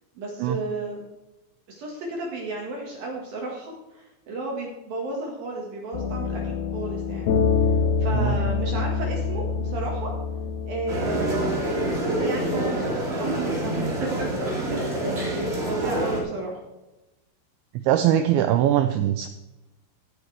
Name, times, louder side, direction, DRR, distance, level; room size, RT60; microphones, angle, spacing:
voice 1, 0.1-1.0 1.7-7.3 8.0-10.1 10.7-11.4 11.9-16.6, right 2 dB, 60° right, -1 dB, 2.9 m, -33 dB
sound 1, 5.9-11.7, left 5 dB, 85° left, 2.3 m, -26 dB
sound 2, 10.9-16.2, right 1 dB, 30° right, 1.2 m, -26 dB
voice 2, 17.8-19.3, right 11 dB, 85° right, 8 dB, 2.6 m, -21 dB
17.0 x 8.4 x 3.4 m, 1.0 s
omnidirectional pair, 5.9 m